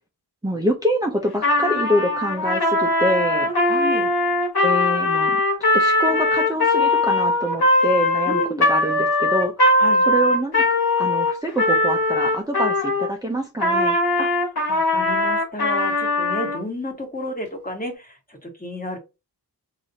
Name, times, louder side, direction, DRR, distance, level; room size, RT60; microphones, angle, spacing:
voice 1, 0.4-3.5 4.6-5.4 5.7-9.8 10.1-10.6 11.0-14.0, equal, 10° right, 0 dB, 0.7 m, -25 dB
Trumpet, 1.4-13.1 13.6-16.6, left 2 dB, 65° left, 1.7 m, -20 dB
voice 2, 3.6-4.1 8.2-8.7 9.8-10.0 14.2-14.3 14.7-18.1 18.4-19.0, left 1 dB, 20° left, 2 dB, 1.4 m, -31 dB
4.8 x 2.8 x 2.8 m, 0.26 s
wide cardioid pair, 65°, 40 cm